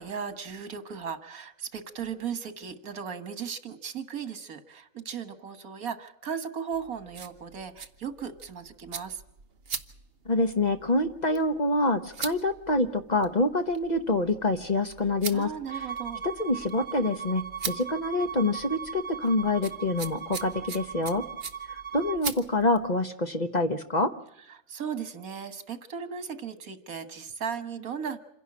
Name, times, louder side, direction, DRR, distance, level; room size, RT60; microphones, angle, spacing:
voice 1, 0.0-9.2 15.3-16.2 24.5-28.2, right 7 dB, 85° right, 10 dB, 1.9 m, -36 dB
sound 1, 6.7-22.9, right 5 dB, 45° right, 1.3 m, -42 dB
voice 2, 10.3-15.5 16.2-21.2 21.9-24.1, left 2 dB, 35° left, 7 dB, 1.1 m, -26 dB
Bowed string instrument, 15.7-22.2, right 8 dB, 25° right, 1.0 m, -38 dB
27.0 x 11.0 x 8.5 m, 0.84 s
omnidirectional pair, 1.5 m